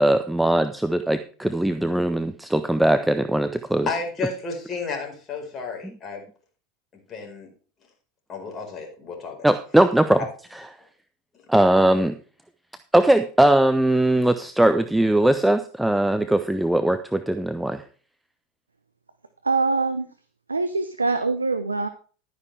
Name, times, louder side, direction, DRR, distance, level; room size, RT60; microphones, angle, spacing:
voice 1, 0.0-3.9 9.4-10.2 10.5-10.6 11.5-12.1 12.9-17.8, right 1 dB, 5° right, 9 dB, 0.7 m, -20 dB
voice 2, 3.9-6.3 7.1-7.5 8.3-9.5, left 4 dB, 30° left, 3 dB, 4.7 m, -32 dB
voice 3, 19.4-20.1 20.5-21.9, right 3 dB, 85° right, 11 dB, 0.7 m, -23 dB
12.5 x 9.8 x 3.4 m, 0.40 s
figure-of-eight pair, 80°, 0 cm